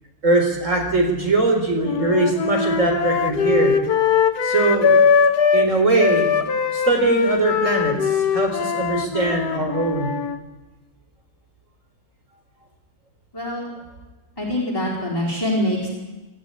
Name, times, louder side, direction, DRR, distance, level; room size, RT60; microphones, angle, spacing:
voice 1, 0.2-3.7 4.4-4.9 5.5-6.3 6.7-10.1, right 2 dB, 55° right, 2 dB, 4.5 m, -21 dB
sound 1, 1.8-5.7 6.0-10.4, left 6 dB, 80° left, 1.8 m, -20 dB
voice 2, 13.3-13.7 14.4-15.9, left 1 dB, 15° left, -6 dB, 4.6 m, -24 dB
22.0 x 13.5 x 9.7 m, 1.1 s
omnidirectional pair, 1.6 m